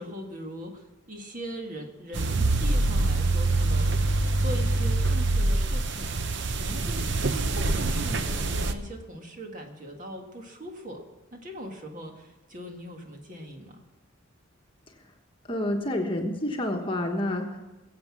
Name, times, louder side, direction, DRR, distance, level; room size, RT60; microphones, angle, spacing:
voice 1, 0.0-11.0 11.3-13.8, equal, 40° right, 3 dB, 1.8 m, -40 dB
sound 1, 2.1-8.7, right 2 dB, 55° right, 0.8 m, -25 dB
voice 2, 15.5-17.6, left 1 dB, 25° left, 2 dB, 1.3 m, -28 dB
22.0 x 8.0 x 6.1 m, 1.1 s
head